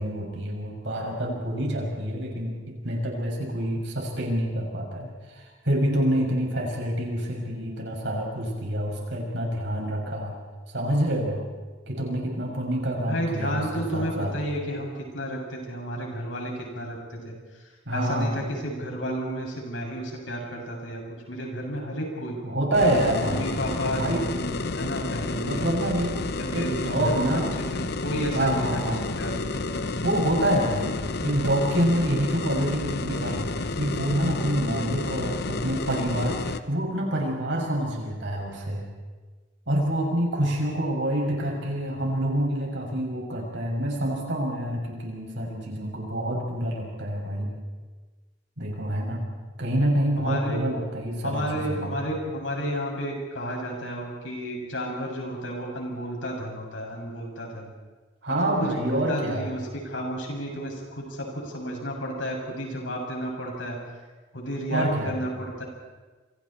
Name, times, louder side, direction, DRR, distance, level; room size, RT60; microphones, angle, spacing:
voice 1, 0.0-10.4 10.7-11.5 11.9-14.3 17.8-18.4 22.4-23.5 24.0-24.2 25.4-26.2 26.5-27.5 28.3-29.1 30.0-38.9 39.7-47.5 48.6-49.2 49.6-52.0 58.2-59.5 64.7-65.2, right 1 dB, 65° right, 0 dB, 6.8 m, -27 dB
voice 2, 13.0-17.6 17.9-21.0 21.3-22.4 23.2-25.7 26.4-30.0 50.2-50.6 51.2-57.7 58.4-63.8 64.3-65.6, equal, 85° left, 0 dB, 7.1 m, -32 dB
sound 1, 22.7-36.6, left 3 dB, 60° left, 0.9 m, -30 dB
29.5 x 25.5 x 4.5 m, 1.3 s
head